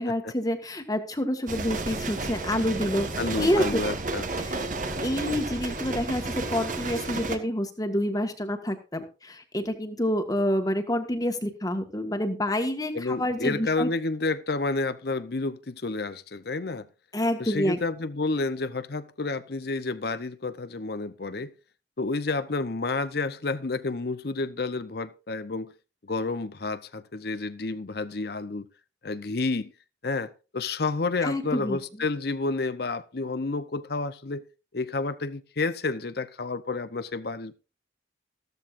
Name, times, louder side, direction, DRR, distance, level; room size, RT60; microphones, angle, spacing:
voice 1, 0.0-3.1 3.4-3.8 4.4-4.7 5.0-13.9 17.1-17.8 31.2-31.8, left 1 dB, 20° left, 1.5 m, -28 dB
sound 1, 1.5-7.4, right 2 dB, 45° right, 1.5 m, -32 dB
voice 2, 3.2-4.2 12.9-16.9 17.4-21.5 22.0-25.7 26.0-28.7 29.0-29.7 30.0-34.4 34.7-37.5, left 3 dB, 55° left, 0.8 m, -30 dB
14.5 x 13.5 x 2.6 m
head